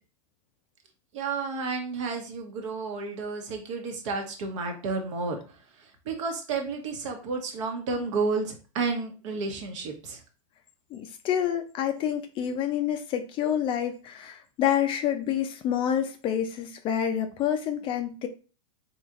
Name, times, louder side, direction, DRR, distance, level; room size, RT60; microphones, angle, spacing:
voice 1, 1.1-5.4 6.1-10.2, right 4 dB, 60° right, 3 dB, 1.1 m, -31 dB
voice 2, 10.9-18.3, left 9 dB, 30° left, 7 dB, 0.4 m, -28 dB
4.0 x 3.0 x 2.4 m, 0.36 s
hypercardioid pair, 125°, 18 cm